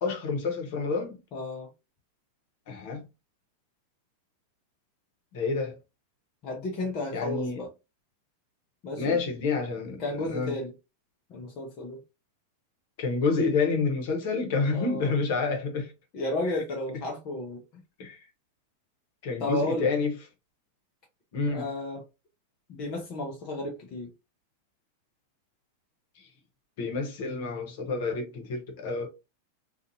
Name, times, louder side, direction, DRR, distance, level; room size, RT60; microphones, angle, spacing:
voice 1, 0.0-1.2 2.7-3.0 5.3-5.8 7.1-7.6 9.0-10.5 13.0-15.9 18.0-18.2 19.2-20.1 21.3-21.7 26.2-26.3 26.8-29.1, left 4 dB, 60° left, 1.0 m, -28 dB
voice 2, 1.3-1.7 6.4-7.7 8.8-9.2 10.0-10.7 11.3-12.0 14.7-15.2 16.1-17.8 19.4-19.9 21.5-22.0 22.7-24.1, left 1 dB, 45° left, 0.7 m, -33 dB
2.5 x 2.5 x 2.6 m
hypercardioid pair, 105°, 0 cm